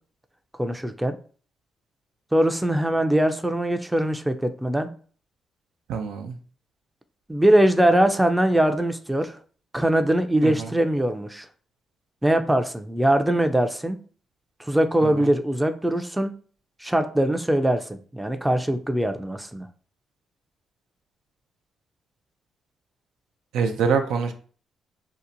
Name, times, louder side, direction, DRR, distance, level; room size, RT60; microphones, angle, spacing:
voice 1, 0.6-1.2 2.3-4.9 7.3-9.4 9.7-11.5 12.2-14.0 14.6-16.3 16.8-19.7, right 1 dB, 10° right, 7 dB, 0.4 m, -22 dB
voice 2, 5.9-6.3 10.4-10.7 15.0-15.3 23.5-24.3, right 6 dB, 80° right, 6 dB, 0.3 m, -25 dB
2.7 x 2.1 x 2.6 m, 0.42 s
supercardioid pair, 55°, 0 cm